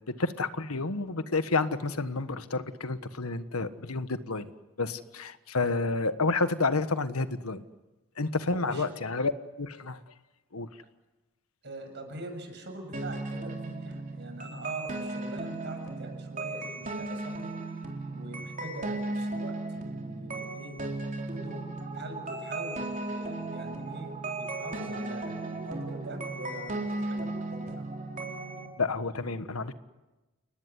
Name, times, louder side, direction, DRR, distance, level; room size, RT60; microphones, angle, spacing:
voice 1, 0.1-4.5 4.8-7.6 8.2-9.3 9.6-10.1 10.5-10.7 28.8-29.7, left 3 dB, 90° left, 11 dB, 1.5 m, -30 dB
voice 2, 8.5-8.9 11.6-17.5 18.1-20.8 21.3-21.7 21.9-27.8, right 1 dB, 55° right, 5 dB, 7.0 m, -43 dB
sound 1, 12.9-28.7, right 2 dB, 40° right, 4.0 m, -36 dB
29.5 x 19.5 x 9.7 m, 1.1 s
head